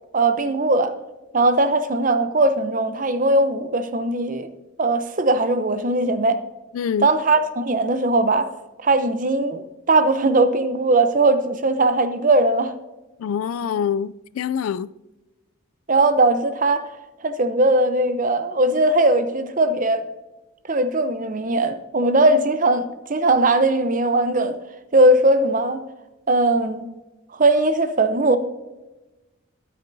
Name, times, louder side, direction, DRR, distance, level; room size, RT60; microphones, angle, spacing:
voice 1, 0.1-0.9 1.3-4.5 4.8-6.4 7.0-8.5 8.8-12.7 15.9-16.9 17.2-20.0 20.7-24.6 24.9-25.8 26.3-26.9 27.3-28.4, right 2 dB, 40° right, 0.7 m, -19 dB
voice 2, 6.7-7.1 13.2-14.9, left 7 dB, 85° left, 0.3 m, -25 dB
13.0 x 9.5 x 2.7 m
head